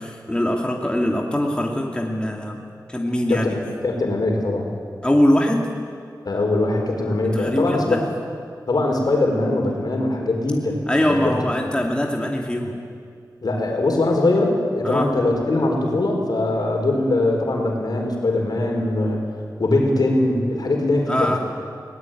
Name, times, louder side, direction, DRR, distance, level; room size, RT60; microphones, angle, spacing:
voice 1, 0.0-2.6 2.9-3.5 5.0-5.7 7.3-8.0 10.9-12.8 14.8-15.1 21.1-21.4, left 1 dB, 15° left, 0 dB, 2.6 m, -22 dB
voice 2, 3.3-4.7 6.2-8.0 8.7-10.8 11.1-11.3 13.4-19.2 19.6-21.4, left 2 dB, 70° left, 1 dB, 4.7 m, -21 dB
21.0 x 18.5 x 9.4 m, 2.2 s
wide cardioid pair, 75°, 7 cm